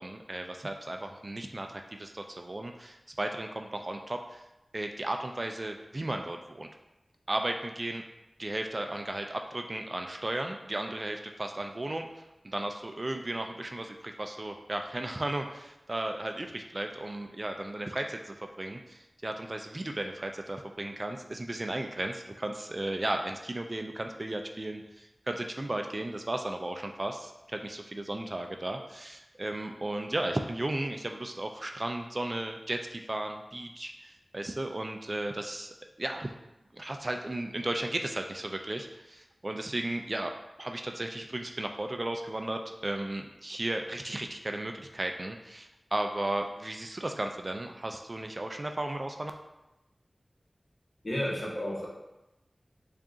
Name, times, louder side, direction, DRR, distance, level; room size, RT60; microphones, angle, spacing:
voice 1, 0.0-4.4 4.7-6.7 7.3-8.0 8.4-12.1 12.4-36.3 36.7-40.3 40.6-49.3, right 1 dB, 45° right, 4 dB, 0.3 m, -35 dB
voice 2, 51.0-51.9, equal, 45° left, -4 dB, 1.0 m, -32 dB
3.8 x 2.4 x 3.6 m, 0.95 s
wide cardioid pair, 55°, 0 cm